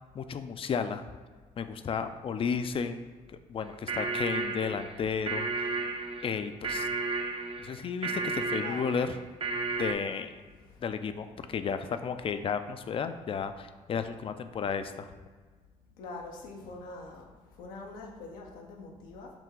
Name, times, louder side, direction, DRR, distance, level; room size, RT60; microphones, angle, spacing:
voice 1, 0.1-1.0 1.6-3.0 3.3-5.7 6.2-6.9 7.6-9.1 9.8-10.3 10.8-15.1, left 6 dB, 40° left, 10 dB, 0.4 m, -33 dB
sound 1, 3.6-9.9, right 3 dB, 40° right, 0.6 m, -33 dB
voice 2, 8.5-9.1 16.0-17.2 17.6-19.3, left 3 dB, 90° left, 0 dB, 0.6 m, -43 dB
5.8 x 2.2 x 3.7 m, 1.4 s
supercardioid pair, 70°, 15 cm